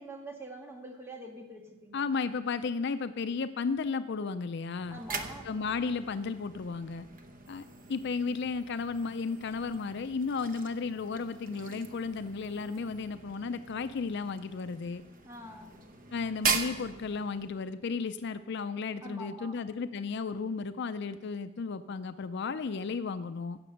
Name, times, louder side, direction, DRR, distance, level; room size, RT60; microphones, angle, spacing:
voice 1, 0.0-2.1 4.9-5.5 15.2-15.7 19.0-19.6, right 1 dB, 10° right, 2 dB, 1.6 m, -45 dB
voice 2, 1.9-5.0 5.4-7.1 7.5-15.0 16.1-23.6, left 4 dB, 55° left, 11 dB, 0.4 m, -34 dB
sound 1, 4.7-17.7, right 4 dB, 40° right, 0.9 m, -40 dB
16.0 x 6.8 x 6.4 m, 1.1 s
head